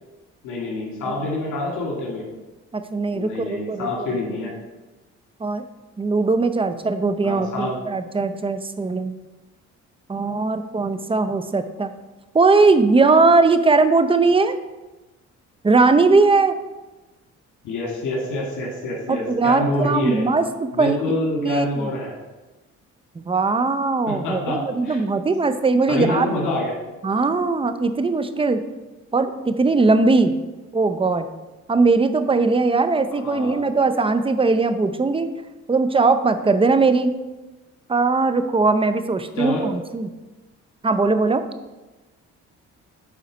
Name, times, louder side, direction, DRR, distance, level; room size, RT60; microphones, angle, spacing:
voice 1, 0.4-2.2 3.1-4.6 7.2-7.8 17.6-20.3 20.7-22.1 24.1-25.0 25.9-26.8 33.2-33.6 39.4-39.7, left 2 dB, 90° left, -3 dB, 2.1 m, -26 dB
voice 2, 2.7-3.9 5.4-5.7 6.0-9.1 10.1-11.9 12.3-14.5 15.6-16.6 19.1-21.9 23.2-26.3 27.0-28.6 29.1-30.3 30.7-31.3 31.7-35.3 35.7-37.1 37.9-40.1 40.8-41.4, right 3 dB, 20° right, 10 dB, 0.6 m, -19 dB
9.4 x 4.0 x 5.1 m, 1.1 s
cardioid pair, 90°, 30 cm